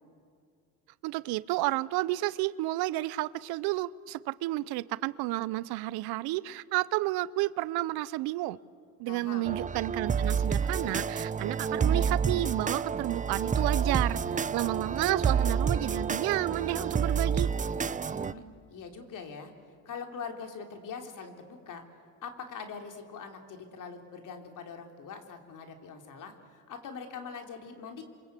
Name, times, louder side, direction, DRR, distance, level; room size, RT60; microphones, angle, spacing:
voice 1, 1.0-8.6 9.0-17.5, right 18 dB, 75° right, 19 dB, 0.8 m, -31 dB
voice 2, 9.1-9.5 18.0-18.4 18.7-19.5 19.9-21.8 22.2-28.0, left 5 dB, 55° left, 4 dB, 3.6 m, -43 dB
sound 1, 9.5-18.3, right 6 dB, 20° right, 0.6 m, -29 dB
28.5 x 24.0 x 8.3 m, 2.3 s
supercardioid pair, 95°, 38 cm